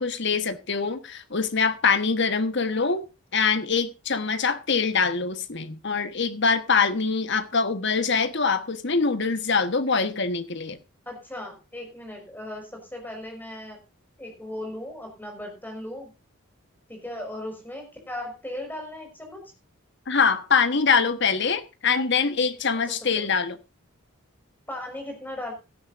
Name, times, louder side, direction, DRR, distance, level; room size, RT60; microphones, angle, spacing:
voice 1, 0.0-3.0 3.3-10.8 20.1-23.6, left 5 dB, 55° left, 1.3 m, -24 dB
voice 2, 11.1-13.8 14.2-16.1 16.9-19.4 22.9-23.4 24.7-25.5, left 1 dB, 10° left, 5.3 m, -37 dB
17.5 x 12.0 x 2.6 m
head